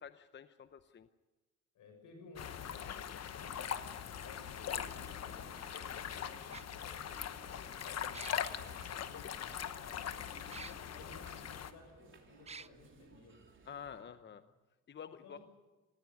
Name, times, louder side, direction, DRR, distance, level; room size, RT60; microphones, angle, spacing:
voice 1, 0.0-1.1 13.6-14.4 14.9-15.4, left 7 dB, 35° left, 11 dB, 0.8 m, -49 dB
voice 2, 1.7-10.6 10.9-13.4 15.2-15.4, left 3 dB, 80° left, 5 dB, 6.6 m, -57 dB
sound 1, 2.4-11.7, left 9 dB, 60° left, 1.2 m, -41 dB
sound 2, 3.4-14.0, right 4 dB, 40° right, 3.3 m, -60 dB
sound 3, 3.9-4.0 5.5-5.6 6.5-6.6 8.1-8.5 10.5-10.7 11.3-11.4 12.5-12.7, right 5 dB, 20° right, 0.6 m, -48 dB
19.0 x 15.5 x 9.7 m, 1.2 s
cardioid pair, 90°, 30 cm